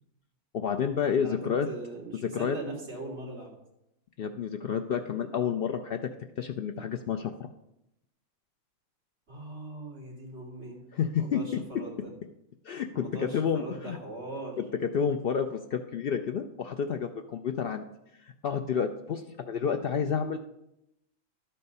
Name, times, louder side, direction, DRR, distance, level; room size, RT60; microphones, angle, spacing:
voice 1, 0.5-1.7 2.2-2.6 4.2-6.1 6.4-7.5 10.9-11.6 12.6-14.0 14.8-17.8 18.2-20.4, left 7 dB, 80° left, 6 dB, 0.5 m, -30 dB
voice 2, 1.6-3.5 9.3-10.8 11.1-12.1 12.9-14.6, right 2 dB, 45° right, -3 dB, 2.7 m, -40 dB
12.0 x 4.4 x 5.4 m, 0.85 s
omnidirectional pair, 1.5 m